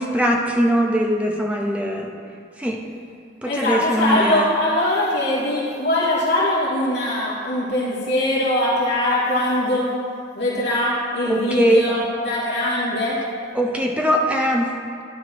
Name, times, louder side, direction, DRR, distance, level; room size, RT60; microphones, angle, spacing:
voice 1, 0.0-2.1 2.6-2.8 3.4-4.5 11.3-11.9 13.5-14.7, equal, 5° right, 0 dB, 0.8 m, -21 dB
voice 2, 3.5-9.9 10.3-13.2, left 1 dB, 60° left, -9 dB, 2.7 m, -21 dB
12.5 x 11.0 x 3.0 m, 2.3 s
head